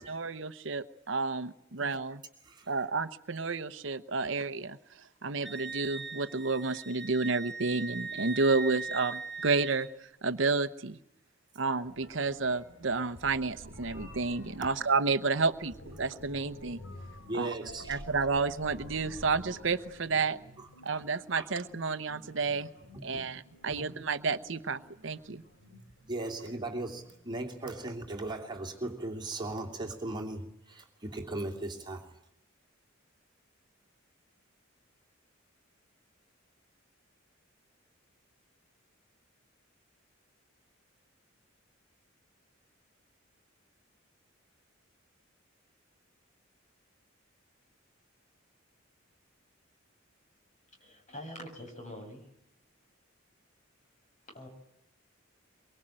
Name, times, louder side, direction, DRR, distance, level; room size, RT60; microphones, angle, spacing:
voice 1, 0.0-2.2 2.7-11.0 11.6-16.8 17.3-17.5 17.9-20.4 20.8-22.7 23.0-25.4, right 4 dB, 65° right, 0.9 m, -31 dB
Wind instrument woodwind instrument, 5.4-9.9, right 4 dB, ahead, 1.5 m, -40 dB
sound 1, 11.8-28.3, equal, 70° left, 8.0 m, -51 dB
voice 2, 17.2-18.0 20.6-20.7 20.9-21.0 21.4-21.5 22.9-23.2 23.7-23.8 26.1-32.2, right 2 dB, 20° right, 2.8 m, -38 dB
voice 3, 50.8-52.3 54.3-54.5, left 1 dB, 35° left, 7.1 m, -44 dB
24.0 x 23.0 x 8.9 m
head